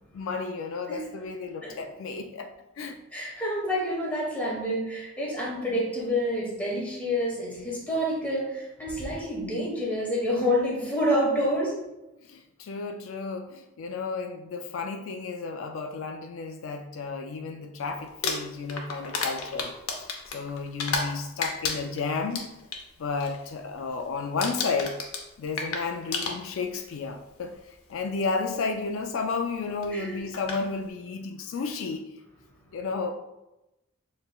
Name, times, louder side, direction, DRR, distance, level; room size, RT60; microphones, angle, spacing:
voice 1, 0.1-2.5 2.8-3.0 12.2-20.1 20.3-22.5 23.0-25.0 25.4-32.1 32.7-33.1, left 4 dB, 70° left, 5 dB, 0.4 m, -32 dB
voice 2, 3.1-11.8 29.9-30.2 32.7-32.8, equal, 5° left, -4 dB, 1.2 m, -28 dB
Crumpling crinkling, 18.1-21.1 21.4-22.8 23.2-23.5 23.8-24.1 24.4-26.8 27.7-27.8 29.8-29.9 30.3-30.6, left 4 dB, 90° left, 0.7 m, -32 dB
6.7 x 3.1 x 2.3 m, 0.95 s
head